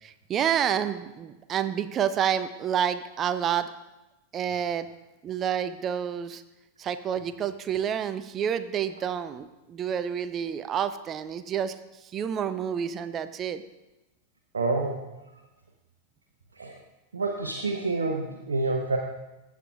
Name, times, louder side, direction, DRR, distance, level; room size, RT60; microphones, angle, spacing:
voice 1, 0.0-3.7 4.3-4.9 5.2-6.4 6.8-11.7 12.1-13.6, right 8 dB, 30° right, 12 dB, 0.5 m, -29 dB
voice 2, 14.5-15.0 16.6-16.7 17.1-19.0, right 3 dB, 70° right, 1 dB, 0.8 m, -28 dB
15.0 x 7.3 x 2.3 m, 1.0 s
figure-of-eight pair, 90°, 0 cm